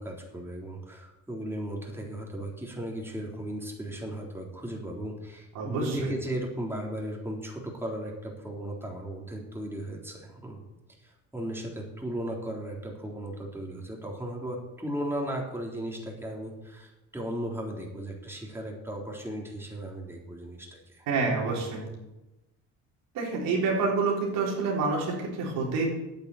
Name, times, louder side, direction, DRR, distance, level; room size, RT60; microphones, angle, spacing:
voice 1, 0.0-10.6 11.0-21.1, right 1 dB, 5° right, -1 dB, 3.7 m, -36 dB
voice 2, 5.5-6.0 21.1-21.9 23.1-25.9, right 4 dB, 75° right, -2 dB, 4.1 m, -27 dB
9.7 x 9.2 x 8.4 m, 1.0 s
supercardioid pair, 75°, 33 cm